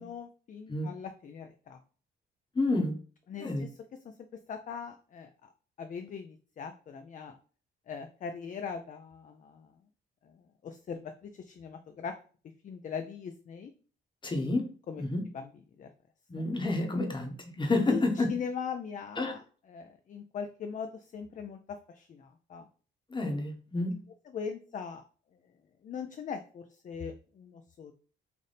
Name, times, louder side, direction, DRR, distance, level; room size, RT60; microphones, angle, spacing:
voice 1, 0.0-1.8 3.3-3.7 4.0-4.1 4.5-5.5 5.8-7.4 7.9-9.7 10.2-12.2 12.6-13.7 14.9-15.0 15.3-15.5 15.8-15.9 16.4-16.5 17.9-19.4 19.7-22.7 24.3-25.0 25.8-27.9, left 6 dB, 40° left, 7 dB, 0.4 m, -40 dB
voice 2, 2.5-3.0 3.4-3.6 14.2-14.7 15.0-15.2 16.3-18.3 19.2-19.3 23.1-24.0, left 2 dB, 25° left, 4 dB, 1.0 m, -29 dB
3.4 x 2.5 x 4.0 m, 0.40 s
cardioid pair, 90°, 20 cm